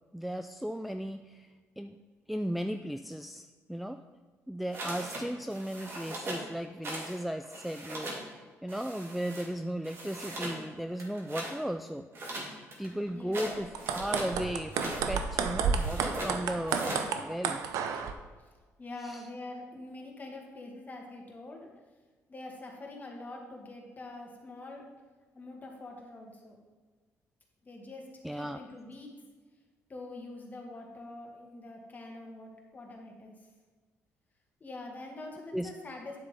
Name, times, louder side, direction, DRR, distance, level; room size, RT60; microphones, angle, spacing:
voice 1, 0.1-2.0 2.3-4.0 4.5-12.1 12.8-17.6 19.0-19.2 28.2-28.6 35.5-35.7, equal, ahead, 7 dB, 0.3 m, -36 dB
sound 1, 4.7-5.2 5.5-6.5 6.8-7.2 7.4-8.2 8.7-9.5 9.8-10.6 11.0-11.5 12.1-14.3 14.7-15.1 15.7-16.3 16.7-17.1, right 1 dB, 45° right, 2.6 m, -39 dB
voice 2, 13.1-13.6 18.4-18.5 18.8-21.8 22.3-24.9 25.3-26.6 27.6-28.1 28.3-29.1 29.9-33.5 34.6-36.2, left 2 dB, 30° left, 0 dB, 2.0 m, -45 dB
sound 2, 13.6-18.1, right 6 dB, 85° right, 0.7 m, -31 dB
9.3 x 7.4 x 3.8 m, 1.4 s
cardioid pair, 95°, 6 cm